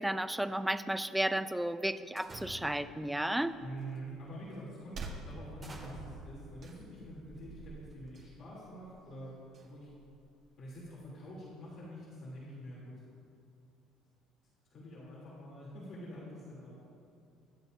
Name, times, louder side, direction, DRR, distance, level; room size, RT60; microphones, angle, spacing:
voice 1, 0.0-3.6, right 1 dB, 5° right, 11 dB, 0.4 m, -33 dB
sound 1, 2.2-3.0 3.8-4.0 4.5-4.6 5.3-8.2, right 2 dB, 20° right, 2.0 m, -50 dB
sound 2, 3.5-11.0, right 3 dB, 35° right, 1.4 m, -51 dB
voice 2, 3.6-9.4 9.6-9.9 10.6-12.9 14.7-16.8, right 1 dB, 40° left, -6 dB, 3.2 m, -46 dB
25.0 x 12.0 x 2.7 m, 2.5 s
cardioid pair, 165°, 0 cm